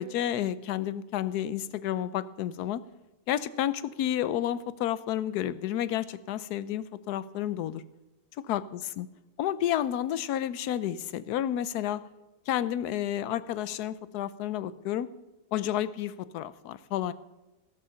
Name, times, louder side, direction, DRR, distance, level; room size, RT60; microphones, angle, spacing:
voice 1, 0.0-2.8 3.3-7.8 8.5-9.1 9.4-12.0 12.5-15.1 15.5-17.1, left 11 dB, 70° left, 16 dB, 1.1 m, -31 dB
13.5 x 13.5 x 5.6 m, 1.1 s
omnidirectional pair, 1.8 m